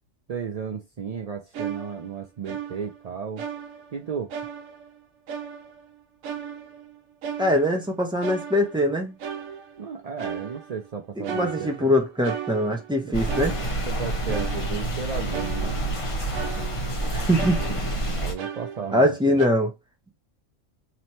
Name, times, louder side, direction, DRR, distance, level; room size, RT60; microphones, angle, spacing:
voice 1, 0.3-3.4 3.9-4.3 9.8-11.9 13.1-13.2 13.9-15.8 18.0-19.4, right 6 dB, 60° right, 0.4 m, -34 dB
sound 1, 1.5-3.0 3.4-4.1 4.3-5.0 5.3-5.9 6.2-7.9 8.2-8.9 9.2-9.9 10.2-10.9 11.2-13.0 13.3-14.0 14.3-15.0 15.3-16.1 16.3-17.0 17.4-19.1 19.4-19.5, right 8 dB, 90° right, 1.1 m, -36 dB
voice 2, 7.4-9.2 11.2-13.6 17.1-17.6 18.9-19.7, equal, 5° right, 0.9 m, -22 dB
sound 2, 13.1-18.3, right 1 dB, 25° left, 1.0 m, -28 dB
3.2 x 3.0 x 4.2 m
omnidirectional pair, 1.4 m